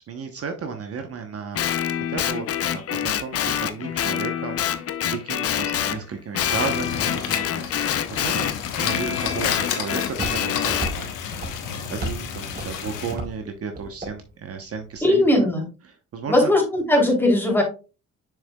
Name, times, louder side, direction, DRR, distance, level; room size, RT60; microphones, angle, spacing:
voice 1, 0.1-1.6 1.9-8.5 8.8-10.0 10.3-11.4 11.6-15.5 16.1-16.5, right 5 dB, 50° right, 6 dB, 1.0 m, -34 dB
Guitar, 1.5-6.0 6.3-10.9, left 9 dB, 50° left, 0.7 m, -26 dB
sound 1, 6.4-13.1, left 8 dB, 90° left, 1.2 m, -31 dB
Walk footsteps, 9.2-15.0, right 1 dB, 30° right, 3.0 m, -36 dB
voice 2, 15.0-15.6 16.3-17.6, left 1 dB, 5° left, -1 dB, 3.1 m, -18 dB
6.9 x 6.5 x 2.3 m, 0.33 s
cardioid pair, 90°, 30 cm